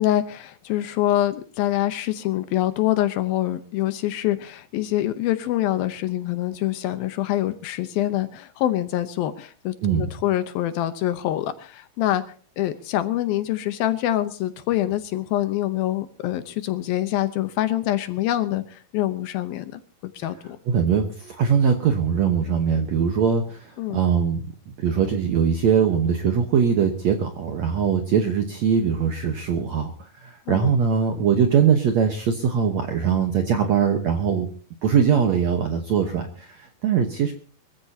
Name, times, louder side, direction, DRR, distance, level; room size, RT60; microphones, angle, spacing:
voice 1, 0.0-12.2 12.6-20.6 23.8-24.0 30.5-30.7, left 13 dB, 75° left, 11 dB, 2.5 m, -25 dB
voice 2, 20.7-34.5 34.8-37.3, right 7 dB, 70° right, 5 dB, 1.7 m, -22 dB
24.5 x 15.0 x 2.8 m, 0.40 s
omnidirectional pair, 4.7 m